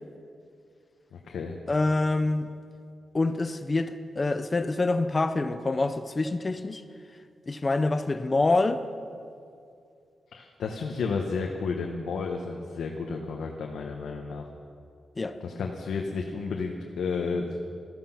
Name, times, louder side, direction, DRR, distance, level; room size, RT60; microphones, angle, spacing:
voice 1, 1.1-1.6 10.3-14.5 15.4-17.6, left 4 dB, 85° left, 2 dB, 1.1 m, -32 dB
voice 2, 1.7-2.5 3.1-6.8 7.5-8.8 15.2-15.4, left 2 dB, 25° left, 11 dB, 0.5 m, -26 dB
15.0 x 14.0 x 5.8 m, 2.4 s
wide cardioid pair, 160°, 0 cm